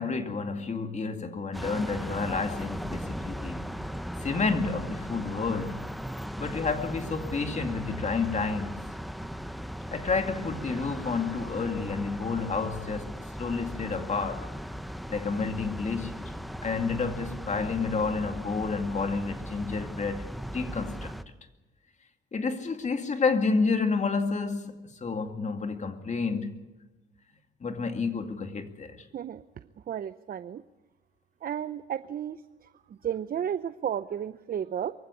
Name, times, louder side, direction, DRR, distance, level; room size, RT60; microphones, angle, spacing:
voice 1, 0.0-3.7 4.2-5.9 6.4-8.8 9.9-14.5 15.1-16.3 16.6-21.1 22.3-26.6 27.6-29.0, left 4 dB, 35° left, 2.3 m, -30 dB
sound 1, 1.5-21.2, equal, ahead, 1.0 m, -38 dB
voice 2, 29.1-30.6 31.4-34.9, right 9 dB, 45° right, 0.7 m, -33 dB
23.5 x 15.5 x 9.8 m
cardioid pair, 90°, 20 cm